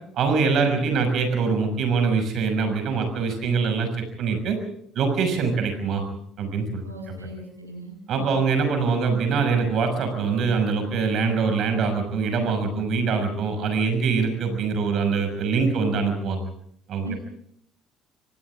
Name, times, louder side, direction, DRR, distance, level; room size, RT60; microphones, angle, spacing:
voice 1, 0.1-3.9 4.2-4.6 4.9-6.0 6.4-6.8 8.1-16.4 16.9-17.1, right 5 dB, 50° right, 6 dB, 6.2 m, -23 dB
voice 2, 6.8-8.4 17.0-17.2, right 2 dB, 90° right, 1 dB, 6.9 m, -38 dB
29.5 x 26.5 x 3.7 m, 0.65 s
figure-of-eight pair, 55°, 0 cm